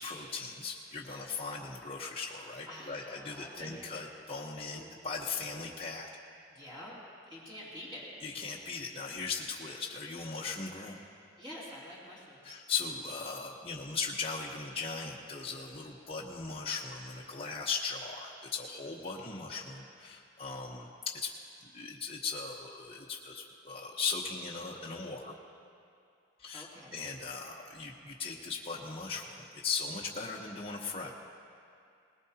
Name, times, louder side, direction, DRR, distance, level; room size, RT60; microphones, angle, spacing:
voice 1, 0.0-6.1 8.2-11.0 12.4-20.9 21.2-21.3 21.7-25.4 26.4-31.1, left 4 dB, 30° left, -4 dB, 1.0 m, -38 dB
voice 2, 2.7-3.8 4.7-4.9 6.5-7.0 7.3-8.1 11.4-12.6 19.2-19.6 26.5-27.0, left 1 dB, 25° right, -9 dB, 2.9 m, -48 dB
20.5 x 19.5 x 2.9 m, 2.5 s
head